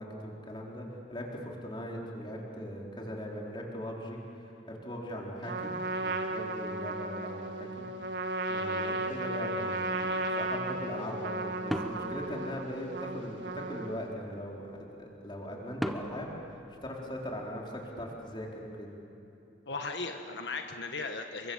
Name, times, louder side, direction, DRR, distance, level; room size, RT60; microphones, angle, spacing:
voice 1, 0.0-5.7 6.0-7.8 8.5-18.9, equal, 25° left, -2 dB, 4.3 m, -40 dB
Trumpet, 5.4-14.1, right 2 dB, 90° right, 1.7 m, -35 dB
sound 1, 11.7-13.2 15.8-17.6, equal, ahead, 1.0 m, -38 dB
voice 2, 19.7-21.5, left 3 dB, 75° left, 4 dB, 1.4 m, -37 dB
29.5 x 23.5 x 7.4 m, 2.9 s
head